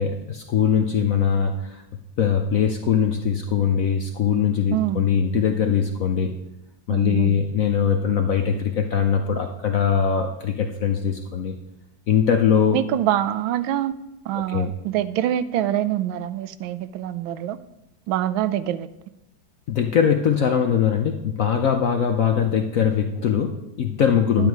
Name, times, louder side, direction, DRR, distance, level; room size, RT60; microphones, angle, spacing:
voice 1, 0.0-1.8 2.2-6.3 6.9-11.5 12.1-12.8 14.5-14.7 19.7-24.5, left 7 dB, 65° left, 5 dB, 0.8 m, -21 dB
voice 2, 4.7-5.0 6.9-7.4 12.7-13.9 14.3-17.6 18.1-18.9 24.4-24.5, right 12 dB, 90° right, 14 dB, 1.4 m, -25 dB
10.5 x 9.2 x 4.7 m, 0.91 s
omnidirectional pair, 2.1 m